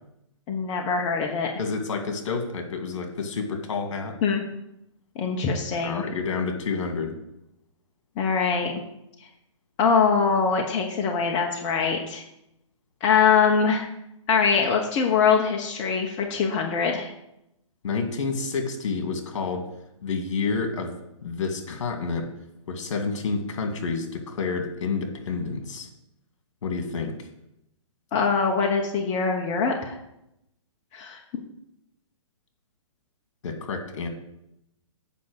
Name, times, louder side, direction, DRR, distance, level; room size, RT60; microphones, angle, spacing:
voice 1, 0.5-1.5 4.2-4.4 5.1-6.0 8.2-8.7 9.8-12.2 13.0-13.9 14.3-17.1 28.1-30.0 30.9-31.2, left 5 dB, 30° left, 1 dB, 1.1 m, -23 dB
voice 2, 1.6-4.2 5.8-7.2 17.8-19.6 20.0-21.0 21.2-22.3 22.7-25.9 26.6-27.1 33.4-34.1, left 4 dB, 65° left, 5 dB, 2.2 m, -29 dB
8.4 x 5.5 x 6.4 m, 0.82 s
hypercardioid pair, 140°, 16 cm